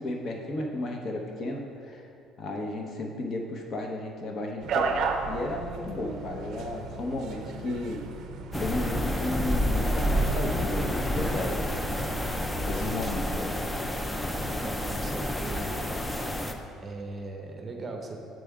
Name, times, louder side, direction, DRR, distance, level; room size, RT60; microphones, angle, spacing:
voice 1, 0.0-2.1 2.4-8.0 8.6-11.7 12.7-13.6, left 2 dB, 45° left, 2 dB, 0.8 m, -34 dB
sound 1, 4.6-12.8, right 4 dB, 60° right, 0.5 m, -35 dB
sound 2, 8.5-16.5, equal, 10° left, 0.4 m, -29 dB
voice 2, 14.6-15.9 16.8-18.2, right 2 dB, 25° right, 2 dB, 0.8 m, -38 dB
7.5 x 3.4 x 4.8 m, 2.5 s
cardioid pair, 120°, 0 cm